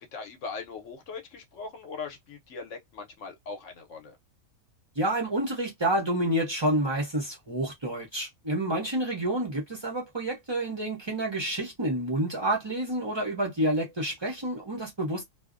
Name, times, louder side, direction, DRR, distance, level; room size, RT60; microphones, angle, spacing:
voice 1, 0.1-4.2, left 4 dB, 65° left, 0.9 m, -40 dB
voice 2, 5.0-15.2, right 1 dB, 45° right, 0.3 m, -29 dB
2.5 x 2.0 x 2.4 m
omnidirectional pair, 1.6 m